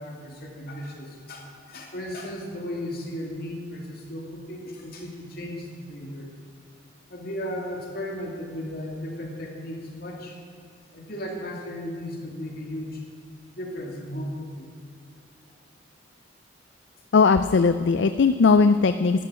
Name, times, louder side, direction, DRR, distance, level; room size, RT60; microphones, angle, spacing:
voice 1, 0.0-6.3 7.1-10.4 10.9-13.0 13.5-14.7, left 1 dB, 50° left, 0 dB, 2.6 m, -35 dB
voice 2, 17.1-19.2, left 4 dB, 65° left, 11 dB, 0.4 m, -19 dB
12.5 x 12.5 x 6.2 m, 2.2 s
head